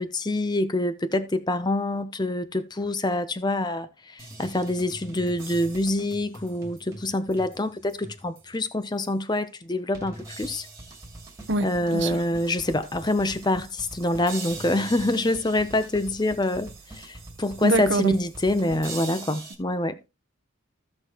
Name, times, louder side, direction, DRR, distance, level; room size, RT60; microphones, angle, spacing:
voice 1, 0.0-10.7 11.6-20.0, left 1 dB, 20° left, 0.7 m, -26 dB
sound 1, 4.2-8.6 9.0-9.1 9.9-19.5, right 2 dB, 15° right, 2.3 m, -42 dB
voice 2, 11.5-12.2 17.6-18.2, right 2 dB, 55° right, 0.8 m, -25 dB
14.5 x 6.4 x 2.9 m
head